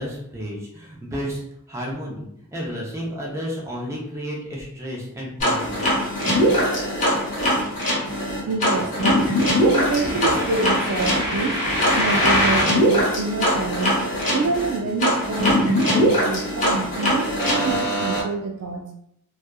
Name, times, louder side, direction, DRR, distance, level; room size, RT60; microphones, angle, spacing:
voice 1, 0.0-1.4 1.7-5.8, equal, 15° right, -4 dB, 0.5 m, -32 dB
sound 1, 5.4-18.2, equal, 35° left, 0.8 m, -21 dB
voice 2, 8.3-11.6 12.0-14.0 14.3-18.9, right 3 dB, 80° right, 2 dB, 0.3 m, -27 dB
2.7 x 2.3 x 2.3 m, 0.74 s
head